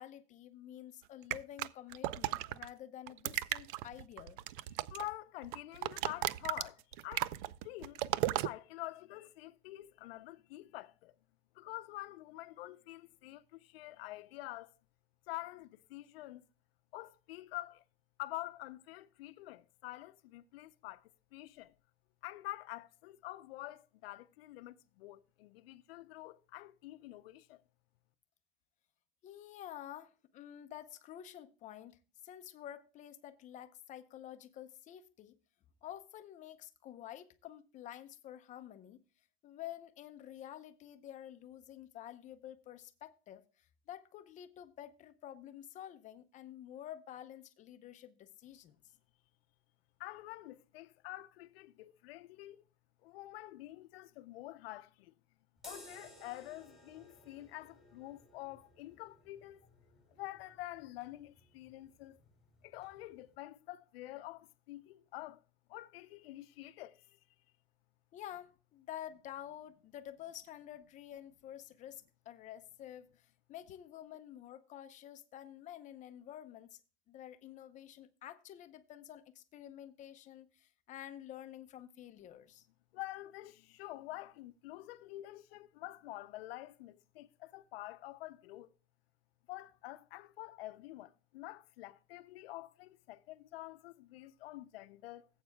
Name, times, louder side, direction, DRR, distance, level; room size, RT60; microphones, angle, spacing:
voice 1, 0.0-4.4 29.2-35.4 35.8-39.0 39.4-43.4 43.9-48.8 68.1-76.8 77.1-82.7, left 11 dB, 25° left, 0.7 m, -49 dB
sound 1, 1.3-2.7 3.1-5.1 5.4-8.5, right 15 dB, 55° right, 0.5 m, -35 dB
voice 2, 4.9-7.3 7.6-8.0 8.3-11.1 11.5-14.7 15.3-16.4 16.9-17.8 18.2-21.7 22.2-27.6 50.0-52.6 53.0-55.1 55.6-59.6 60.1-62.2 62.6-65.4 65.7-67.2 82.9-88.7 89.5-95.3, left 17 dB, 70° left, 0.7 m, -47 dB
sound 2, 55.6-63.4, equal, ahead, 2.5 m, -59 dB
17.0 x 8.2 x 2.2 m
supercardioid pair, 155°, 31 cm